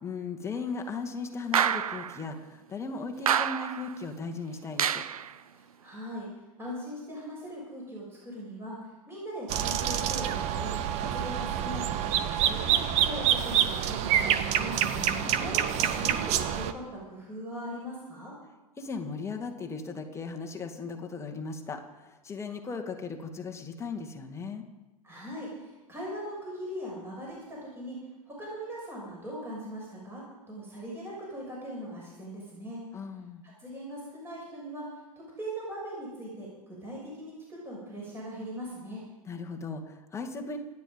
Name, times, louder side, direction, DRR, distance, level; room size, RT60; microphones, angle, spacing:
voice 1, 0.0-5.0 14.9-15.4 18.8-24.6 32.9-33.4 39.3-40.6, left 4 dB, 15° left, 3 dB, 2.0 m, -37 dB
sound 1, 1.5-2.2 3.3-3.9 4.8-5.3, right 9 dB, 70° right, 0.7 m, -27 dB
voice 2, 5.5-6.3 6.6-8.8 9.1-10.7 11.0-14.7 15.3-18.3 25.0-28.0 28.3-32.8 33.6-34.8 35.4-39.0, equal, 10° right, -5 dB, 6.4 m, -40 dB
sound 2, 9.5-16.7, right 10 dB, 35° right, 1.1 m, -27 dB
27.0 x 9.9 x 5.3 m, 1.1 s
figure-of-eight pair, 100°, 19 cm